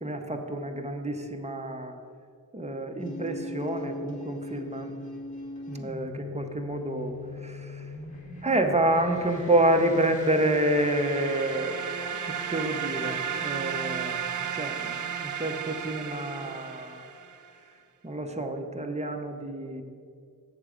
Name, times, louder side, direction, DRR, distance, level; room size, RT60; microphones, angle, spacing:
voice 1, 0.0-1.9 2.5-4.9 5.7-7.1 7.4-7.9 8.4-17.0 18.0-19.8, right 1 dB, 20° right, 5 dB, 0.7 m, -28 dB
sound 1, 3.0-14.6, left 1 dB, 20° left, 1.7 m, -42 dB
sound 2, 9.8-17.5, right 8 dB, 55° right, 0.5 m, -34 dB
7.8 x 6.5 x 4.9 m, 2.2 s
wide cardioid pair, 110°, 36 cm